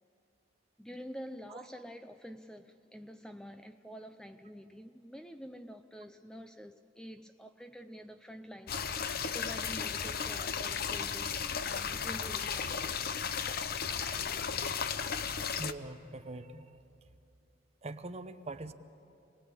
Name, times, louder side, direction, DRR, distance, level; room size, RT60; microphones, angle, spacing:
voice 1, 0.8-13.1, equal, 5° left, 8 dB, 0.5 m, -48 dB
sound 1, 8.7-15.7, left 6 dB, 50° left, 0.7 m, -35 dB
voice 2, 15.6-16.8 17.8-18.7, right 2 dB, 35° right, 9 dB, 0.9 m, -43 dB
28.0 x 20.0 x 8.6 m, 2.7 s
head